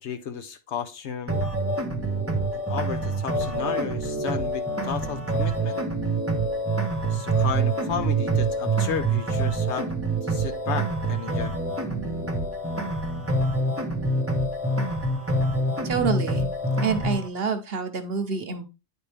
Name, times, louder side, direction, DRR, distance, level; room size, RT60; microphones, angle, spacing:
voice 1, 0.0-1.4 2.5-5.8 7.1-9.9 10.2-11.6, left 7 dB, 60° left, 0.9 m, -33 dB
sound 1, 1.3-17.3, right 2 dB, 10° right, 0.8 m, -26 dB
voice 2, 15.8-16.5 16.8-18.6, right 5 dB, 50° right, 0.9 m, -27 dB
9.8 x 4.4 x 3.4 m
omnidirectional pair, 1.4 m